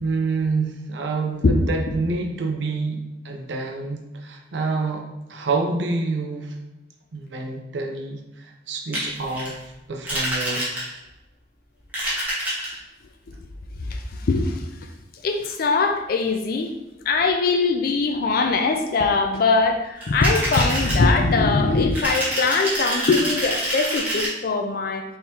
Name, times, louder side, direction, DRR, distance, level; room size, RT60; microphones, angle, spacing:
voice 1, 0.0-6.6 7.1-9.6 9.9-10.8, right 3 dB, 75° right, 2 dB, 0.6 m, -27 dB
sound 1, 8.9-9.5 10.0-11.1 11.8-12.8 20.0-21.0 21.9-24.3, equal, 10° right, 1.1 m, -26 dB
voice 2, 13.8-14.7 15.2-16.7 17.1-25.0, left 3 dB, 50° left, 4 dB, 0.4 m, -21 dB
4.4 x 3.6 x 2.7 m, 0.98 s
head